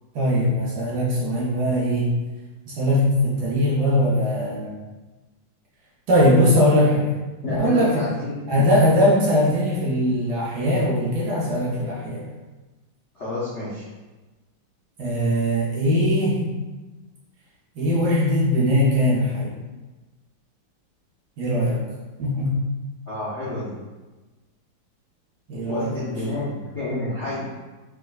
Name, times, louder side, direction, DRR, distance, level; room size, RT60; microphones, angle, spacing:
voice 1, 0.1-2.1 2.7-4.7 6.1-7.1 7.5-8.0 8.5-12.2 15.0-16.4 17.8-19.5 21.4-21.8 22.2-22.6 25.5-26.1, equal, 70° right, -6 dB, 1.1 m, -20 dB
voice 2, 7.4-8.4 13.1-13.9 23.1-23.7 25.7-27.5, left 2 dB, 60° left, -11 dB, 0.7 m, -29 dB
3.4 x 3.0 x 2.2 m, 1.2 s
omnidirectional pair, 2.1 m